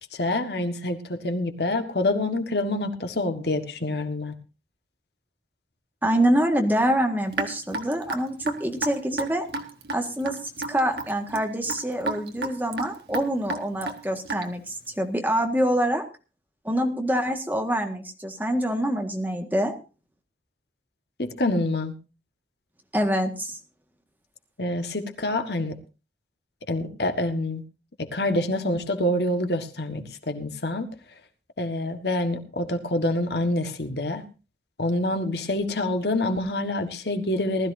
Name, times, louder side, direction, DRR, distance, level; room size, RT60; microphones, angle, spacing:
voice 1, 0.1-4.3 21.2-21.9 24.6-25.8 26.7-27.6 28.0-30.9 31.6-34.2 34.8-37.7, left 1 dB, 70° left, 7 dB, 1.7 m, -26 dB
voice 2, 6.0-9.4 9.9-16.0 16.6-19.8 22.9-23.6, right 1 dB, 10° right, 3 dB, 1.7 m, -25 dB
Raindrop / Drip, 7.3-14.7, right 3 dB, 70° right, 1.6 m, -32 dB
19.5 x 13.5 x 2.7 m, 0.32 s
head